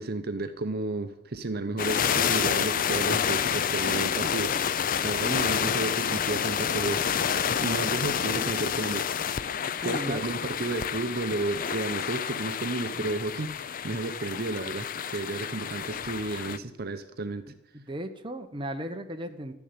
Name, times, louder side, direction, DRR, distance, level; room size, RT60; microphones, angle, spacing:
voice 1, 0.0-7.0 7.6-9.2 9.8-17.5, right 2 dB, 50° right, 9 dB, 0.8 m, -32 dB
sound 1, 1.8-16.6, left 8 dB, 45° left, 0.4 m, -29 dB
voice 2, 9.8-10.2 17.7-19.5, equal, 25° right, 6 dB, 0.9 m, -35 dB
12.0 x 7.2 x 9.5 m, 0.89 s
head